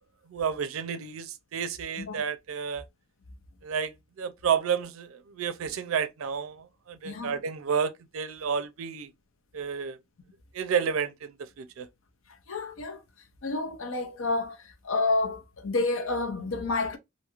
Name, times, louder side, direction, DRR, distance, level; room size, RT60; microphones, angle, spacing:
voice 1, 0.3-2.8 3.6-9.1 9.5-10.0 10.5-11.9, right 7 dB, 80° right, 0.4 m, -31 dB
voice 2, 7.0-7.3 12.5-13.0 13.4-17.0, left 3 dB, 70° left, 0.6 m, -29 dB
2.6 x 2.4 x 2.9 m
head